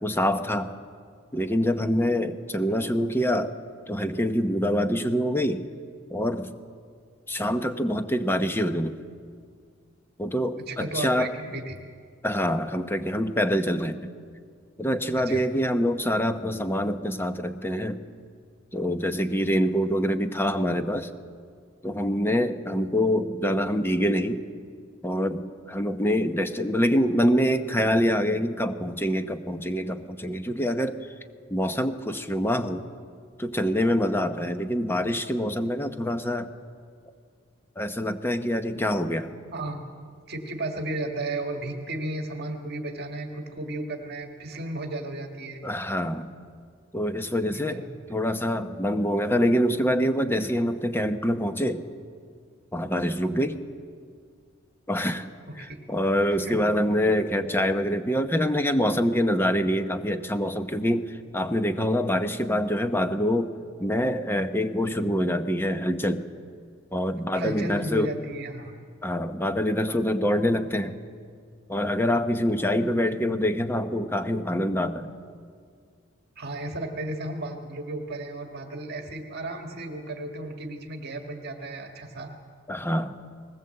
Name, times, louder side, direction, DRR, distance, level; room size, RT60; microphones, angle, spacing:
voice 1, 0.0-0.7 1.3-3.5 3.9-5.6 6.1-6.5 7.3-9.0 10.2-11.3 12.2-14.1 14.8-18.0 18.7-21.1 21.8-24.4 25.0-31.0 31.5-32.9 33.4-36.5 37.8-39.3 45.6-46.3 46.9-51.8 52.7-53.6 54.9-55.3 55.6-63.5 63.8-66.3 66.9-68.1 69.0-71.0 71.7-75.1 82.7-83.1, equal, 10° left, 8 dB, 0.9 m, -25 dB
voice 2, 10.7-11.8 15.2-15.4 39.5-39.8 40.3-45.6 47.5-48.1 55.5-55.8 56.3-56.7 67.3-68.7 76.4-82.3, right 2 dB, 50° right, 3 dB, 1.8 m, -34 dB
20.5 x 19.0 x 7.9 m, 2.1 s
head